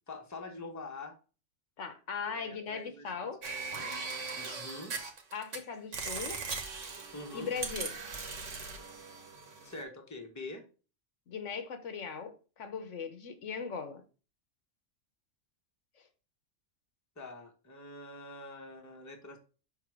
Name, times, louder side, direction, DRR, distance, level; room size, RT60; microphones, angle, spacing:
voice 1, 0.1-1.1 2.3-3.3 4.3-4.9 7.1-7.5 9.6-10.6 17.2-19.4, left 2 dB, 15° left, 0.9 m, -45 dB
voice 2, 1.8-3.4 5.3-6.4 7.3-7.9 11.3-14.0, left 6 dB, 75° left, 1.2 m, -39 dB
sound 1, 3.4-5.6 5.9-9.8, right 4 dB, 80° right, 1.6 m, -39 dB
5.9 x 3.8 x 4.8 m
omnidirectional pair, 1.3 m